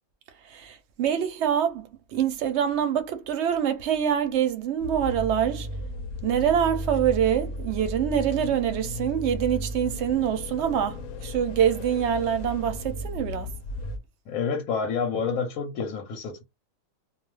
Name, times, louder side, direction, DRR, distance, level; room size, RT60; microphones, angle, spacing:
voice 1, 0.4-5.7 6.2-13.5, right 9 dB, 65° right, 0.7 m, -25 dB
sound 1, 4.8-14.0, left 1 dB, 70° left, 0.9 m, -35 dB
voice 2, 14.3-16.4, left 5 dB, 85° left, 1.1 m, -28 dB
2.4 x 2.3 x 3.1 m
omnidirectional pair, 1.5 m